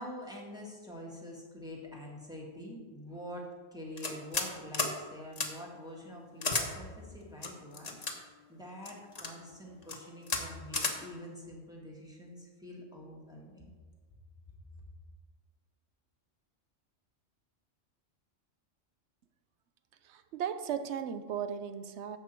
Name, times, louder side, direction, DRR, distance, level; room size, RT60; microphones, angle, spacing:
voice 1, 0.0-13.7, equal, 5° right, -4 dB, 2.0 m, -46 dB
sound 1, 4.0-4.5 4.7-4.9 5.4-5.5 6.4-6.7 7.4-8.1 8.9-9.3 9.8-10.0 10.3-10.4 10.7-11.0, left 3 dB, 35° left, 1.0 m, -32 dB
voice 2, 20.0-22.2, right 8 dB, 70° right, 10 dB, 1.0 m, -36 dB
11.0 x 7.4 x 4.5 m, 1.5 s
omnidirectional pair, 1.3 m